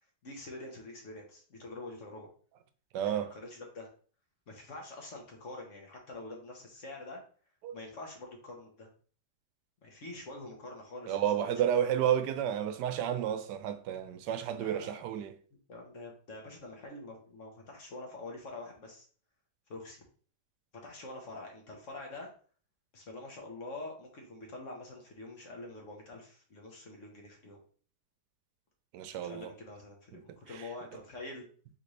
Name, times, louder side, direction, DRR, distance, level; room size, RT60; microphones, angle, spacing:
voice 1, 0.2-2.3 3.0-3.9 4.5-7.2 7.7-8.9 9.8-11.7 12.0-12.1 13.3-13.4 14.5-15.1 15.7-19.1 19.7-20.0 20.8-22.3 22.9-27.6 29.2-31.5, left 2 dB, 50° left, 1.3 m, -46 dB
voice 2, 2.9-3.3 7.6-7.8 11.1-15.3 28.9-29.5, right 10 dB, 90° right, 1.2 m, -31 dB
4.1 x 3.9 x 3.2 m
omnidirectional pair, 1.8 m